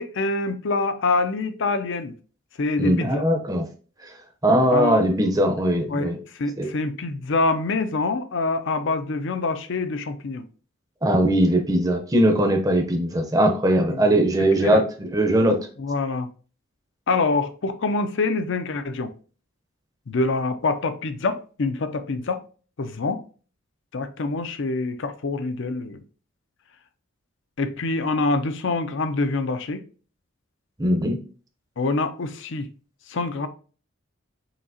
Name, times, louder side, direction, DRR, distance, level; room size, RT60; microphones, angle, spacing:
voice 1, 0.0-2.1 2.6-3.2 4.7-5.0 5.9-10.4 13.8-14.1 14.4-14.8 15.8-16.3 17.1-19.1 20.1-22.4 22.8-23.2 23.9-26.0 27.6-29.8 31.8-32.7 33.1-33.5, left 3 dB, 60° left, 0.5 m, -25 dB
voice 2, 2.8-3.6 4.4-6.2 6.6-6.7 11.0-15.6 30.8-31.2, right 1 dB, 15° right, 0.7 m, -20 dB
5.9 x 2.8 x 2.7 m
head